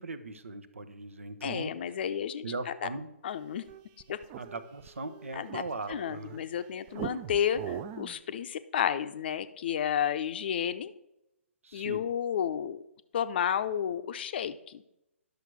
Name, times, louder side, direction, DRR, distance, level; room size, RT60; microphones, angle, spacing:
voice 1, 0.0-1.7 2.4-3.1 4.4-6.4 11.6-12.0, right 3 dB, 70° right, 12 dB, 0.9 m, -39 dB
voice 2, 1.4-2.9 3.2-3.6 4.1-4.2 5.3-5.6 5.9-10.9 11.7-12.8 13.1-14.8, left 9 dB, 45° left, 12 dB, 0.6 m, -31 dB
sound 1, 3.4-6.4 6.9-8.2, right 10 dB, 25° right, 0.4 m, -41 dB
10.5 x 6.6 x 4.7 m, 0.88 s
figure-of-eight pair, 130°, 7 cm